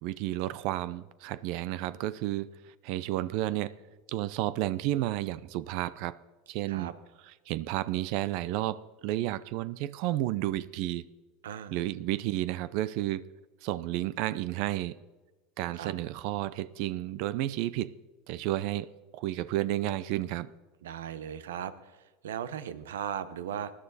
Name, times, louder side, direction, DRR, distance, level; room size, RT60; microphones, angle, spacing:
voice 1, 0.0-2.5 2.8-3.8 4.1-6.2 6.5-6.9 7.5-11.0 11.7-13.2 13.6-15.0 15.6-18.0 18.3-18.9 19.1-20.5, right 15 dB, 60° right, 0.6 m, -31 dB
voice 2, 11.4-11.8 15.7-15.9 20.8-23.7, right 9 dB, 85° right, 0.9 m, -37 dB
20.0 x 11.0 x 4.1 m
hypercardioid pair, 105°, 0 cm